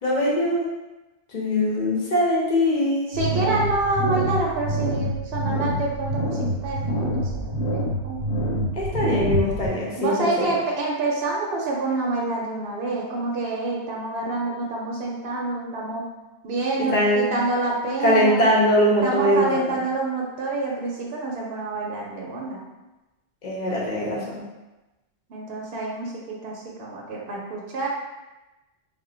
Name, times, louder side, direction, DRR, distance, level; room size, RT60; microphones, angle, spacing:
voice 1, 0.0-0.7 1.3-3.2 8.7-10.1 10.4-10.6 16.9-17.3 18.0-19.8 23.4-24.4, equal, 45° left, -4 dB, 0.7 m, -22 dB
sound 1, 3.1-9.7, right 1 dB, 70° left, 1.0 m, -26 dB
voice 2, 3.1-8.2 10.0-16.1 16.4-18.5 19.0-22.6 25.3-27.9, right 2 dB, 65° right, -3 dB, 0.7 m, -27 dB
2.2 x 2.1 x 3.7 m, 1.0 s
omnidirectional pair, 1.2 m